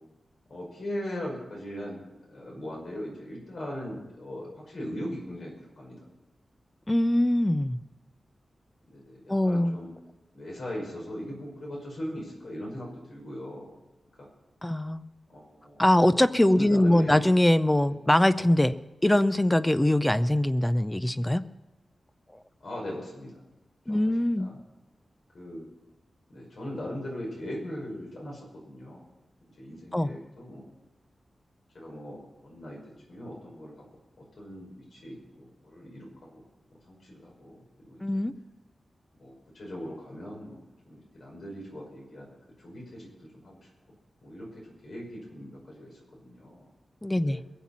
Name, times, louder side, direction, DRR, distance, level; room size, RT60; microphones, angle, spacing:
voice 1, 0.5-2.0 2.3-6.0 8.9-9.9 10.3-13.8 14.2-14.3 15.3-15.8 16.5-17.2 17.8-18.0 22.6-23.4 23.9-24.0 24.4-24.6 25.3-25.7 26.3-29.1 29.6-30.7 31.7-32.8 33.1-33.9 34.4-36.4 36.8-38.2 39.2-40.6 40.8-43.6 44.2-46.7 47.2-47.4, equal, 65° left, -2 dB, 5.7 m, -39 dB
voice 2, 6.9-7.8 9.3-9.8 14.6-15.0 15.8-18.8 19.0-21.4 23.9-24.5 29.9-30.1 38.0-38.3 47.0-47.4, left 1 dB, 10° left, 13 dB, 0.5 m, -22 dB
21.5 x 7.4 x 7.3 m, 1.0 s
wide cardioid pair, 125°, 0 cm